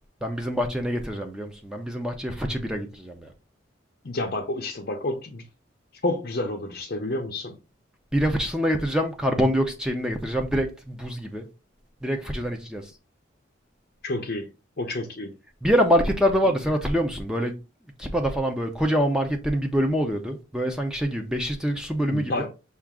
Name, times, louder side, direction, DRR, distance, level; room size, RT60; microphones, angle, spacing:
voice 1, 0.2-3.3 8.1-11.5 12.0-12.9 15.6-17.6 18.0-22.5, equal, 5° right, 0.6 m, -25 dB
voice 2, 4.0-5.5 6.0-7.6 14.0-14.5 14.8-15.3 22.1-22.5, left 2 dB, 50° left, 0.6 m, -29 dB
5.8 x 2.5 x 3.6 m
head